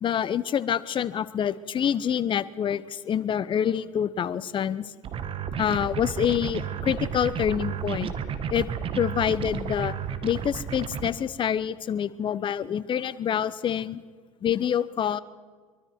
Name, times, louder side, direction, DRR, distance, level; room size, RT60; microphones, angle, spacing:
voice 1, 0.0-4.9 5.6-8.1 8.5-8.7 9.0-9.9 10.2-14.0 14.4-15.2, left 9 dB, 30° left, 17 dB, 0.9 m, -26 dB
sound 1, 5.0-11.1, right 7 dB, 30° right, 1.5 m, -32 dB
23.5 x 23.5 x 4.7 m, 1.5 s
figure-of-eight pair, 75°, 18 cm